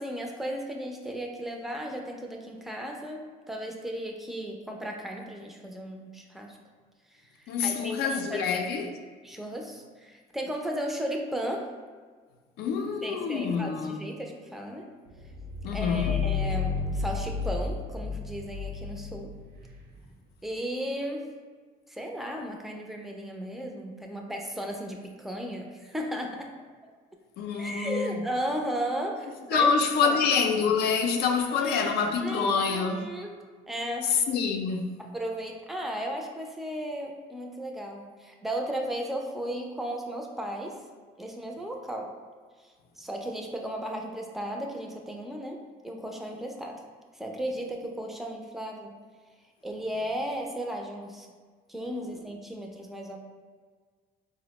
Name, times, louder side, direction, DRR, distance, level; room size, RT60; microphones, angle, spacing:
voice 1, 0.0-6.6 7.4-8.6 9.2-11.7 13.0-14.9 15.7-19.3 20.4-21.3 21.9-26.5 27.6-29.7 30.0-30.2 31.6-33.3 33.7-34.1 35.0-40.8 41.2-42.1 43.0-45.6 45.8-46.8 47.2-49.0 49.6-51.3 51.7-53.2, right 1 dB, ahead, 0.4 m, -35 dB
voice 2, 7.5-9.0 12.6-14.0 15.6-16.2 27.4-28.2 29.5-33.1 34.0-35.0, left 5 dB, 75° left, 0.4 m, -26 dB
sound 1, 15.2-19.9, left 5 dB, 70° right, 0.6 m, -32 dB
4.1 x 2.1 x 2.9 m
cardioid pair, 110°, 17 cm